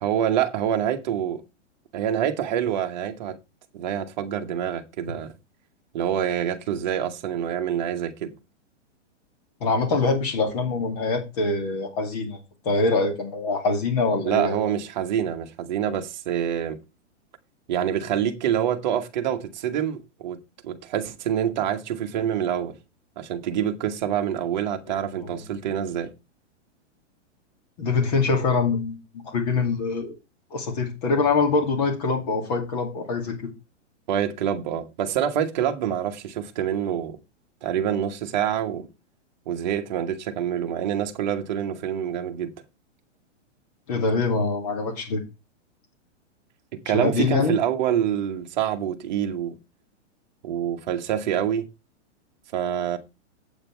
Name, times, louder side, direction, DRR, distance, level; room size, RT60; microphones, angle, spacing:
voice 1, 0.0-1.4 1.9-3.4 3.7-5.3 5.9-8.3 14.2-16.8 17.7-20.4 20.6-22.7 23.2-26.1 34.1-37.2 37.6-38.9 39.5-42.5 46.8-49.6 50.4-51.7 52.5-53.0, right 9 dB, 40° right, 1.2 m, -26 dB
voice 2, 9.6-12.4 12.6-14.7 25.3-25.4 27.8-30.1 30.5-33.4 43.9-45.2 46.9-47.5, left 3 dB, 35° left, 2.4 m, -24 dB
8.3 x 7.5 x 4.5 m
hypercardioid pair, 175°, 36 cm